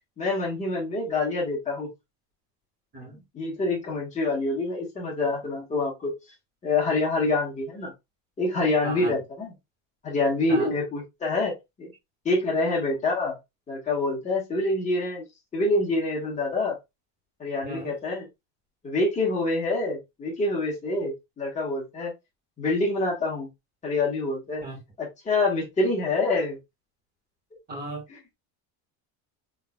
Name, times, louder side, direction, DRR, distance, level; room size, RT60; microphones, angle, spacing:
voice 1, 0.2-1.9 3.0-6.1 6.6-7.9 8.4-9.5 10.0-11.9 12.2-13.4 13.7-15.2 15.5-16.8 17.4-18.3 18.8-22.1 22.6-23.5 23.8-24.6 25.0-26.6 28.1-28.2, left 2 dB, 20° left, 1.5 m, -26 dB
voice 2, 27.7-28.0, right 2 dB, 25° right, 1.9 m, -35 dB
3.8 x 3.3 x 2.4 m
cardioid pair, 170°, 39 cm